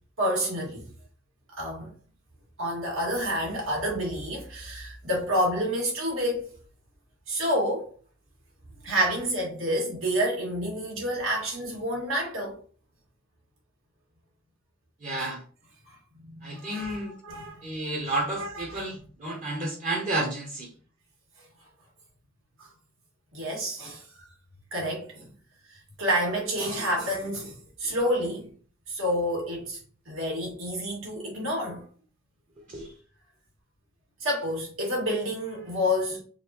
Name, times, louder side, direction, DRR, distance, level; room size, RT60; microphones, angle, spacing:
voice 1, 0.2-0.9 1.6-1.9 2.6-6.5 7.3-7.9 8.8-12.6 15.9-17.7 18.4-18.8 22.6-22.7 23.3-24.2 24.7-25.3 25.7-28.5 28.9-29.8 30.1-31.8 34.2-36.2, equal, 80° right, 1.9 m, -29 dB
voice 2, 15.0-15.4 16.4-17.2 17.6-20.7 32.7-32.9, right 2 dB, 40° right, 0.8 m, -31 dB
4.0 x 3.6 x 2.9 m
head